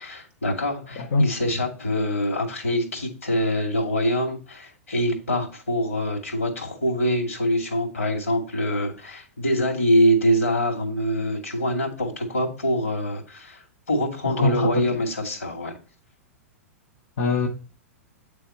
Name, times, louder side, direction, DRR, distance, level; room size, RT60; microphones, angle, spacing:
voice 1, 0.0-13.6 13.9-15.7, equal, 75° left, 2.4 m, -24 dB
voice 2, 1.0-1.3 14.3-14.8 17.2-17.5, left 2 dB, 50° left, 1.0 m, -22 dB
9.0 x 3.5 x 4.4 m
figure-of-eight pair, 100°, 8 cm